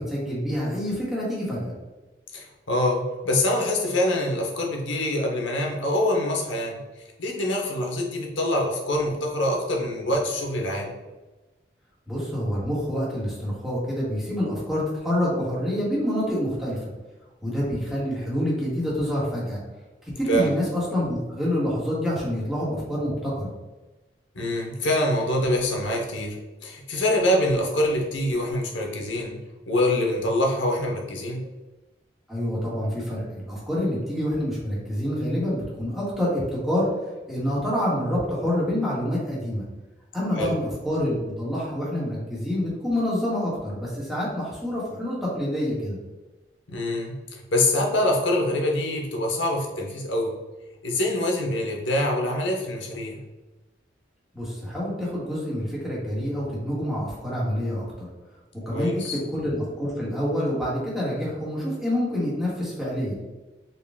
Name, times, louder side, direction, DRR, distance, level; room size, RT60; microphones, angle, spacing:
voice 1, 0.0-1.7 12.1-16.9 17.4-19.6 20.0-23.5 32.3-36.9 37.3-39.6 40.1-46.0 54.3-58.1 58.7-59.0 59.3-63.1, equal, ahead, -7 dB, 1.1 m, -27 dB
voice 2, 2.3-6.8 7.2-10.9 20.3-20.5 24.3-26.4 26.6-29.4 29.7-31.5 40.3-40.5 46.7-50.3 50.8-53.2 58.7-59.2, left 1 dB, 90° left, 1 dB, 0.9 m, -25 dB
4.0 x 2.3 x 3.5 m, 1.1 s
head